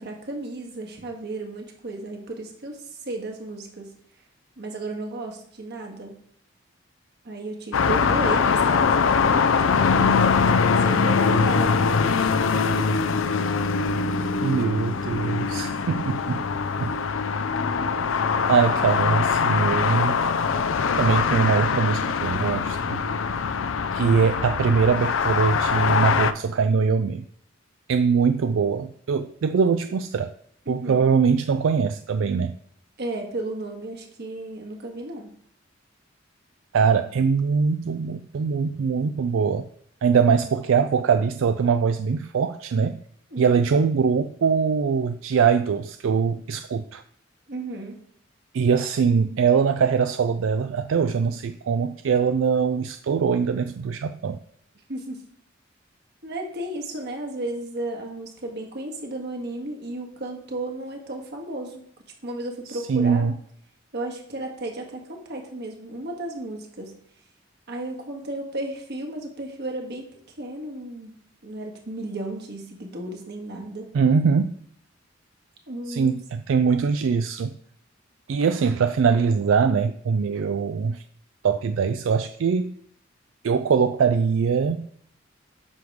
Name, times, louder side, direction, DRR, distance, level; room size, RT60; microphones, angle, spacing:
voice 1, 0.0-2.8 3.0-3.9 4.6-6.1 7.2-12.5 15.4-15.7 30.7-31.1 33.0-35.3 43.3-43.7 47.5-48.0 54.9-55.2 56.2-61.8 62.2-63.3 63.9-66.9 67.7-70.1 70.4-71.1 71.4-73.9 75.7-76.1, right 2 dB, 60° right, 2 dB, 1.7 m, -34 dB
sound 1, 7.7-26.3, left 5 dB, 80° left, 0.5 m, -22 dB
voice 2, 14.4-16.4 16.8-17.0 18.5-20.2 21.0-23.0 23.9-27.2 27.9-30.3 30.7-32.6 36.7-39.7 40.0-43.0 43.4-47.0 48.5-54.4 62.7-63.4 73.9-74.5 75.9-77.5 78.3-81.0 81.4-82.7 83.4-84.9, right 5 dB, 80° right, 10 dB, 0.4 m, -22 dB
9.5 x 6.2 x 3.6 m, 0.63 s
head